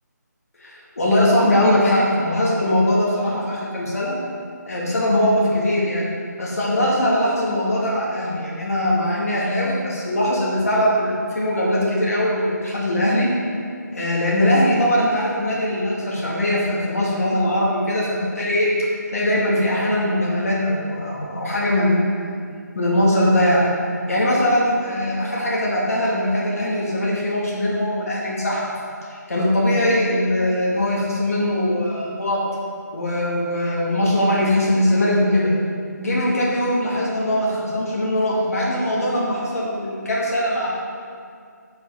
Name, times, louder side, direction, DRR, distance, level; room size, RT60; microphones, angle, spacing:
voice 1, 0.6-4.2 4.7-6.1 6.4-13.3 13.9-18.7 19.1-22.2 22.7-23.6 24.1-28.7 29.1-32.4 32.9-35.5 36.0-40.7, left 1 dB, 50° left, -6 dB, 2.5 m, -21 dB
9.4 x 6.3 x 4.9 m, 2.2 s
figure-of-eight pair, 175°, 10 cm